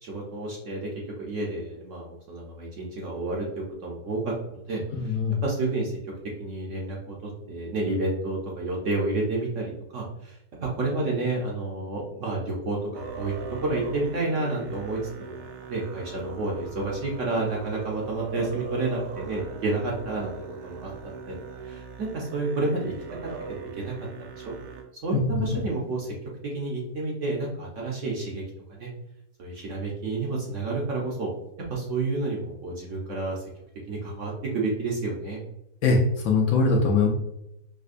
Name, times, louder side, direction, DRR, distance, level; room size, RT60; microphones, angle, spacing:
voice 1, 0.0-0.9 1.2-3.5 3.8-5.2 5.4-6.0 6.4-13.3 13.6-20.4 20.6-20.9 21.3-21.4 21.6-22.9 23.5-23.9 24.4-24.5 25.0-26.1 26.4-28.4 28.7-28.9 29.4-31.3 31.7-33.4 33.9-35.4, right 2 dB, 60° right, -3 dB, 0.9 m, -30 dB
voice 2, 5.0-5.4 25.3-25.5 35.8-37.1, left 4 dB, 70° left, 0 dB, 0.9 m, -22 dB
Musical instrument, 12.9-24.8, right 5 dB, 85° right, 1.2 m, -40 dB
5.0 x 2.1 x 2.4 m, 0.81 s
omnidirectional pair, 1.8 m